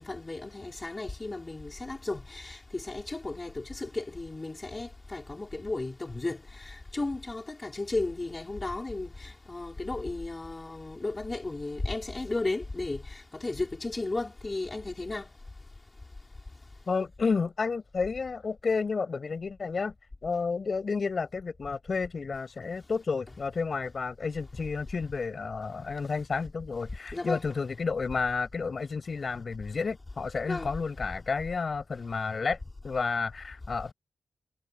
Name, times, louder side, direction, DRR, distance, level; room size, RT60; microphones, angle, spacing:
voice 1, 0.0-15.2 27.1-27.4 30.4-30.7, left 2 dB, 25° left, 4.7 m, -34 dB
voice 2, 16.9-19.9 20.2-32.6 32.8-33.9, left 4 dB, 50° left, 6.7 m, -31 dB
wide cardioid pair, 100°, 0 cm